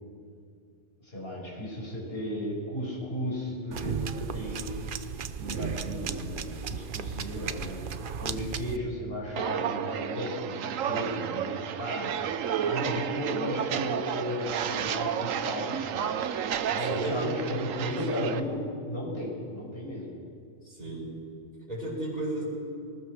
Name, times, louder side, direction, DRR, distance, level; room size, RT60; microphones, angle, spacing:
voice 1, 1.0-4.7 5.4-7.9 8.2-12.2 12.6-16.1 16.7-20.1, left 1 dB, 50° left, -3 dB, 6.1 m, -35 dB
sound 1, 3.7-8.8, right 7 dB, 50° right, 0.8 m, -35 dB
Walk footsteps, 9.3-18.4, right 8 dB, 90° right, 1.2 m, -31 dB
voice 2, 16.9-18.0 20.6-21.2 21.7-22.4, right 1 dB, 30° right, -8 dB, 5.8 m, -35 dB
24.5 x 19.5 x 6.5 m, 2.4 s
omnidirectional pair, 1.3 m